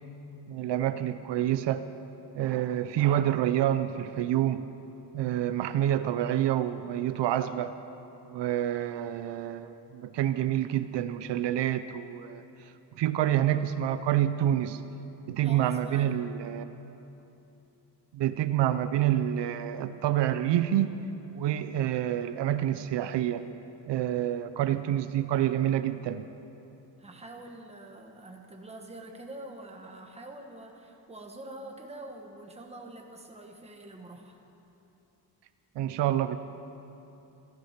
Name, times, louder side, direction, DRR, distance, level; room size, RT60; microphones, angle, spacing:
voice 1, 0.5-1.9 2.3-4.7 5.1-7.7 8.3-12.4 13.0-14.8 15.3-16.6 18.1-20.9 21.3-23.5 23.9-26.2 35.8-36.4, right 11 dB, 80° right, 11 dB, 0.6 m, -27 dB
voice 2, 15.4-16.3 27.0-34.4, right 2 dB, 15° right, 2 dB, 1.3 m, -45 dB
14.5 x 13.0 x 5.9 m, 3.0 s
wide cardioid pair, 160°, 42 cm